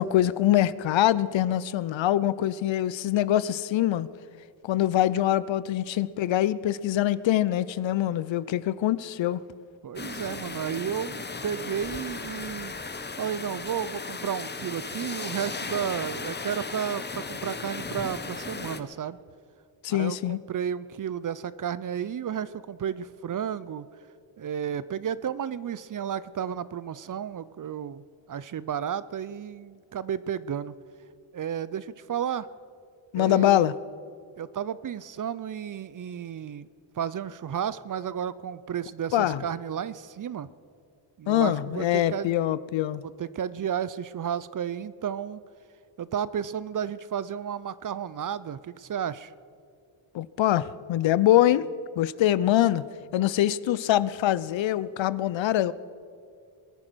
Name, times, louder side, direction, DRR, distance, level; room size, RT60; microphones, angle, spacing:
voice 1, 0.0-4.1 4.6-9.4 19.8-20.4 33.1-33.7 39.1-39.4 41.3-43.0 50.1-51.7 52.0-52.8 53.1-55.7, left 13 dB, 65° left, 18 dB, 0.6 m, -24 dB
voice 2, 9.8-12.7 13.2-19.2 19.9-23.9 24.4-30.8 31.3-32.5 33.1-33.7 34.4-36.7 36.9-40.5 41.2-42.3 43.0-45.4 46.0-49.3, right 8 dB, 40° right, 17 dB, 0.5 m, -32 dB
sound 1, 10.0-18.8, left 4 dB, 20° left, 0.9 m, -36 dB
21.5 x 9.8 x 6.2 m, 2.3 s
cardioid pair, 80°, 50 cm